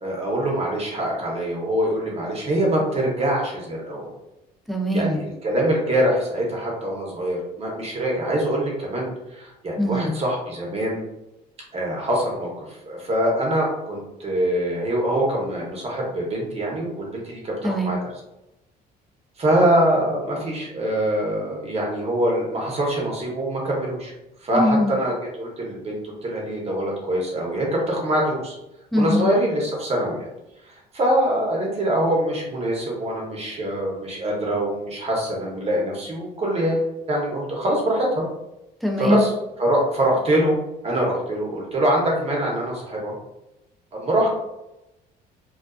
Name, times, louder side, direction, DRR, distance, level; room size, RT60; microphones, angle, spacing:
voice 1, 0.0-4.1 4.9-11.0 11.7-18.0 19.4-24.1 24.4-28.6 28.9-30.2 30.9-38.2 39.0-39.3 39.6-40.6 40.8-43.1 43.9-44.3, right 1 dB, 35° right, -2 dB, 0.9 m, -24 dB
voice 2, 4.7-5.3 9.8-10.2 17.6-17.9 24.5-24.9 28.9-29.3 38.8-39.3, left 1 dB, ahead, 1 dB, 0.4 m, -22 dB
2.4 x 2.3 x 2.3 m, 0.92 s
cardioid pair, 110°, 17 cm